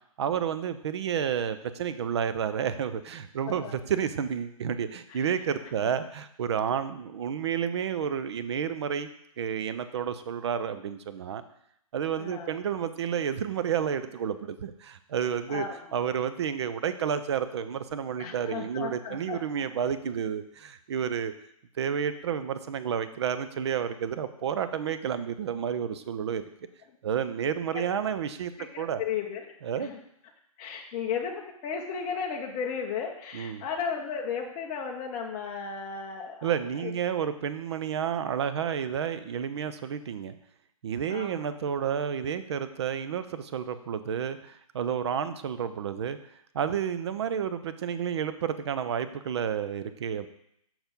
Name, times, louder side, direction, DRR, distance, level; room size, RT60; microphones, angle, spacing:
voice 1, 0.2-9.1 9.4-11.4 11.9-15.6 15.9-21.3 21.8-26.4 27.0-28.5 28.8-29.0 29.6-29.9 33.3-33.6 36.4-40.3 40.8-46.2 46.5-50.3, right 8 dB, 50° right, 11 dB, 0.5 m, -30 dB
voice 2, 3.4-3.7 5.1-5.9 12.2-12.6 15.5-15.9 18.2-19.7 27.7-27.8 28.6-29.5 29.8-30.0 30.6-37.0 41.1-41.5, left 6 dB, 20° left, 1 dB, 0.6 m, -35 dB
5.9 x 4.4 x 5.2 m, 0.74 s
hypercardioid pair, 150°, 19 cm